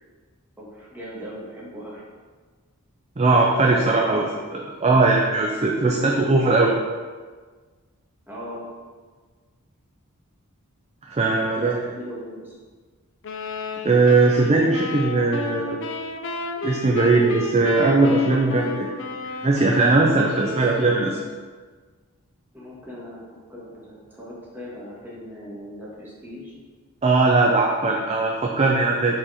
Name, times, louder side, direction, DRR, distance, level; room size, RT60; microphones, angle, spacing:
voice 1, 0.6-2.0 3.7-4.6 5.5-6.2 8.3-8.7 11.2-12.6 22.5-26.5, left 1 dB, 10° right, -6 dB, 1.5 m, -39 dB
voice 2, 3.2-4.3 4.5-6.8 11.1-11.8 13.8-15.8 16.6-18.9 19.4-21.2 27.0-29.2, right 3 dB, 30° right, 0 dB, 0.5 m, -19 dB
sound 1, 13.2-21.2, left 3 dB, 60° left, 0.5 m, -33 dB
4.9 x 4.3 x 4.9 m, 1.5 s
head